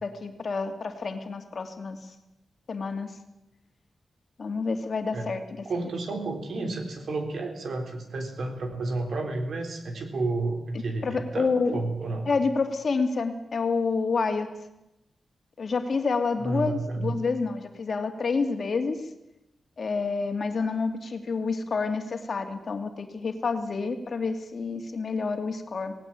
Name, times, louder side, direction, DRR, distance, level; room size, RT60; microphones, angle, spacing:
voice 1, 0.0-2.1 2.7-3.2 4.4-5.4 11.0-11.8 12.3-14.5 15.6-19.1 19.8-25.9, left 4 dB, 50° left, 6 dB, 2.5 m, -28 dB
voice 2, 5.7-12.3 16.4-17.1, right 2 dB, 65° right, 5 dB, 3.8 m, -31 dB
18.5 x 17.0 x 8.9 m, 0.89 s
wide cardioid pair, 120°, 0 cm